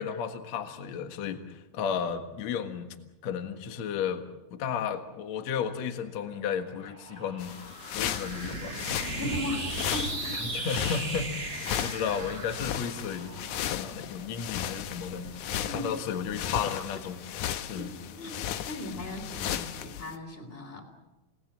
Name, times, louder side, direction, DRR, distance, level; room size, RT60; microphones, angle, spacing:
voice 1, 0.0-2.9 3.2-4.2 4.5-7.5 7.9-8.9 10.3-13.3 13.7-15.3 15.7-17.2 17.6-17.9, left 7 dB, 55° left, 7 dB, 2.4 m, -33 dB
sound 1, 6.0-14.6, right 3 dB, 55° right, 0.6 m, -39 dB
sound 2, 7.4-20.2, left 10 dB, 70° left, 1.9 m, -36 dB
sound 3, 8.2-19.3, right 2 dB, 80° right, 6.3 m, -44 dB
voice 2, 8.9-10.5 15.6-15.9 17.7-17.8 18.1-20.8, left 2 dB, 15° left, 5 dB, 3.1 m, -38 dB
29.0 x 18.5 x 7.5 m, 1.0 s
omnidirectional pair, 4.5 m